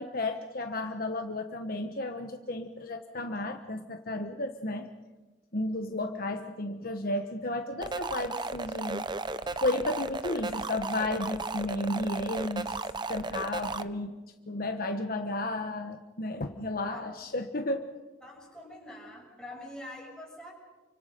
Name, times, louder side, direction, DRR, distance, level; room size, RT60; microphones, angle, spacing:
voice 1, 0.0-4.9 5.5-9.1 9.6-12.8 13.1-14.1 14.5-17.9, left 2 dB, 45° left, 5 dB, 1.2 m, -33 dB
sound 1, 7.8-13.8, right 3 dB, 25° right, 0.7 m, -35 dB
voice 2, 18.2-20.5, left 1 dB, 5° left, -2 dB, 6.6 m, -45 dB
29.5 x 25.0 x 5.3 m, 1.2 s
head